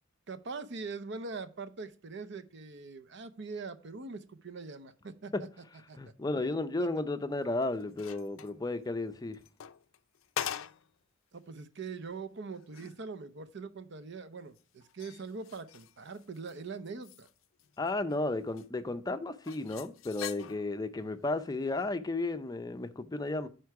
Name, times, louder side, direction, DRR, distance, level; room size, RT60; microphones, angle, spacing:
voice 1, 0.3-5.5 5.9-6.0 6.8-6.9 11.3-17.3, right 4 dB, 60° right, 0.7 m, -42 dB
voice 2, 6.0-9.4 17.8-23.5, left 2 dB, 20° left, 0.5 m, -33 dB
sound 1, 7.4-8.6 9.3-10.9 11.4-11.5 12.0-12.1 12.5-13.0 14.5-16.6 16.8-18.2 18.5-18.7 19.4-20.8 21.7-21.9, left 9 dB, 75° left, 0.5 m, -43 dB
9.4 x 4.5 x 4.7 m
head